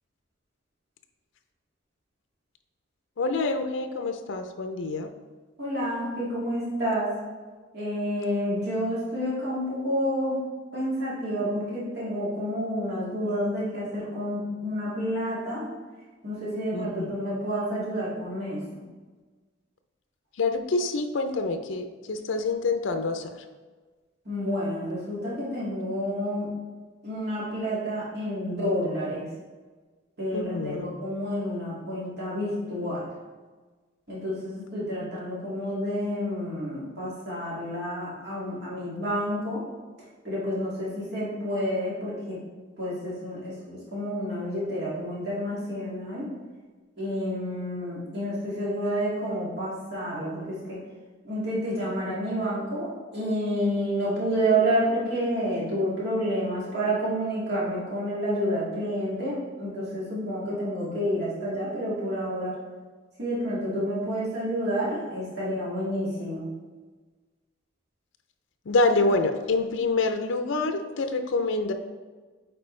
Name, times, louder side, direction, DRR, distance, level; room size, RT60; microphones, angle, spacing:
voice 1, 3.2-5.1 16.7-17.2 20.4-23.3 30.3-30.9 38.5-38.6 68.7-71.7, left 3 dB, 80° left, 7 dB, 0.5 m, -26 dB
voice 2, 5.6-7.1 7.7-10.4 10.7-15.7 16.2-18.8 24.3-26.5 27.0-29.3 30.2-33.1 34.1-39.6 40.2-42.4 42.8-46.3 47.0-50.8 51.2-62.6 63.2-66.4, equal, 60° right, -7 dB, 2.1 m, -29 dB
8.8 x 4.4 x 3.2 m, 1.4 s
head